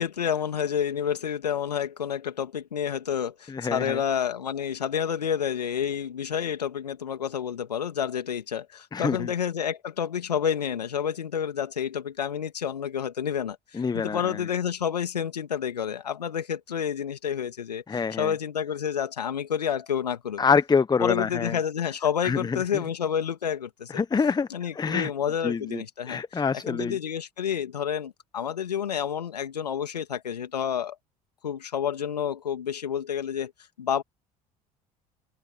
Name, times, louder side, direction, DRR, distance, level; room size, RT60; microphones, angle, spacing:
voice 1, 0.0-20.4 21.0-24.0 24.5-31.0 31.4-33.5 33.8-34.0, left 8 dB, 80° left, 2.4 m, -29 dB
voice 2, 3.5-4.0 8.9-9.3 13.8-14.4 17.9-18.3 20.4-21.5 22.2-22.6 24.0-24.5 24.7-25.1 25.4-27.0, left 5 dB, 20° left, 1.2 m, -26 dB
open air
figure-of-eight pair, 65°, 20 cm